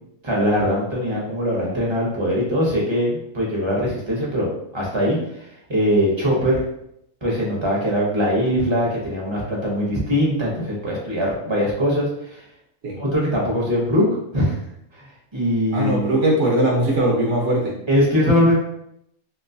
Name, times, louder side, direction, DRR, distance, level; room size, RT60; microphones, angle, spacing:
voice 1, 0.2-6.6 7.2-12.4 13.0-14.1 14.3-14.6 14.9-15.0 15.3-16.2 17.9-18.5, equal, 25° right, -4 dB, 0.7 m, -21 dB
voice 2, 15.7-17.7, right 1 dB, 60° right, -2 dB, 1.1 m, -20 dB
3.1 x 3.0 x 2.7 m, 0.78 s
omnidirectional pair, 1.5 m